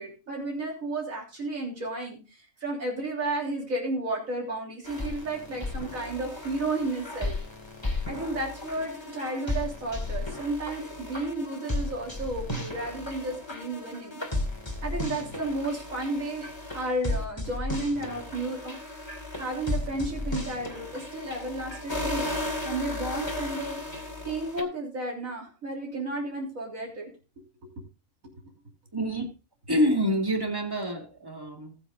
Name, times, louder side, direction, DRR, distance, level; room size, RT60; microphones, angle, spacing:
voice 1, 0.0-7.4 8.1-14.2 14.8-18.8 19.4-23.8 24.2-27.1, right 2 dB, 85° right, 3.7 m, -32 dB
sound 1, 4.9-24.6, left 2 dB, 20° left, 2.4 m, -34 dB
voice 2, 28.9-29.3 29.7-31.8, equal, 15° right, 2.0 m, -27 dB
19.5 x 7.9 x 2.6 m
omnidirectional pair, 1.4 m